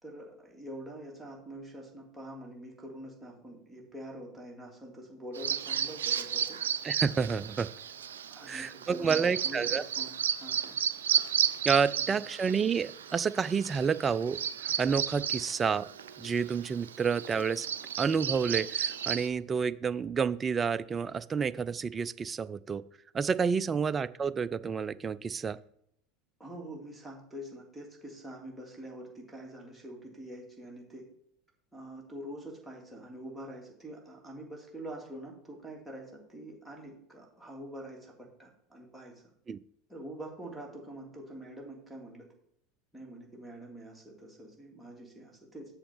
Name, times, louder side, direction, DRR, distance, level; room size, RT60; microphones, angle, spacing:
voice 1, 0.0-6.6 8.3-10.8 12.1-12.2 26.4-31.0 31.7-39.2 39.9-42.3 42.9-45.7, right 1 dB, ahead, -3 dB, 3.1 m, -45 dB
Bird vocalization bird call bird song, 5.3-19.3, right 8 dB, 80° right, 0.5 m, -33 dB
voice 2, 6.8-7.7 8.5-9.8 11.6-15.9 16.2-17.7 18.0-22.8 23.1-25.6 39.5-39.6, right 6 dB, 25° right, 15 dB, 0.4 m, -29 dB
7.0 x 6.0 x 5.5 m, 0.71 s
hypercardioid pair, 80°, 0 cm